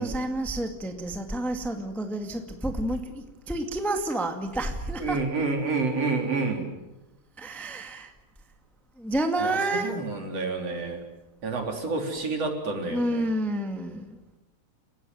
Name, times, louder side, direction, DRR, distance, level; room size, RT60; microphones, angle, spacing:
voice 1, 0.0-5.3 7.4-8.1 9.0-10.0 12.8-14.2, right 1 dB, ahead, 5 dB, 1.2 m, -29 dB
voice 2, 5.0-6.7 9.4-11.0 11.4-13.2, right 3 dB, 45° right, 3 dB, 4.6 m, -29 dB
30.0 x 16.5 x 9.4 m, 1.0 s
omnidirectional pair, 3.9 m